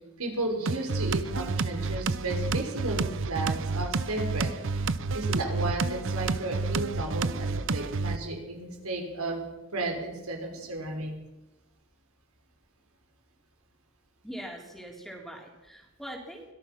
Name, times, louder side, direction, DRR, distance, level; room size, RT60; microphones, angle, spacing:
voice 1, 0.2-4.8 5.1-9.4 9.7-11.1, right 2 dB, 85° right, 2 dB, 5.4 m, -33 dB
sound 1, 0.7-8.2, right 4 dB, 60° right, 0.7 m, -30 dB
voice 2, 14.2-16.5, equal, ahead, 0 dB, 4.0 m, -42 dB
24.5 x 17.5 x 6.0 m, 0.99 s
head